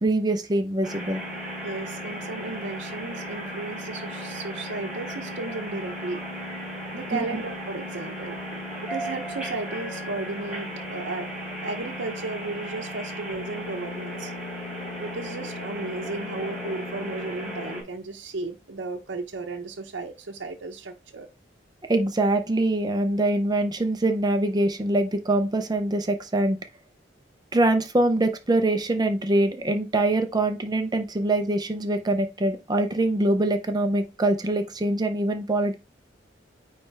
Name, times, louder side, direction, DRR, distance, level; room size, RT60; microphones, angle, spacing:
voice 1, 0.0-1.2 7.1-7.3 21.9-26.6 27.5-35.7, right 2 dB, 20° right, 0.5 m, -24 dB
sound 1, 0.8-17.8, equal, 5° right, 3.4 m, -35 dB
voice 2, 1.6-6.2 6.9-8.4 8.8-11.3 11.6-14.3 15.0-21.3, right 3 dB, 85° right, 0.7 m, -34 dB
9.2 x 3.2 x 3.3 m
head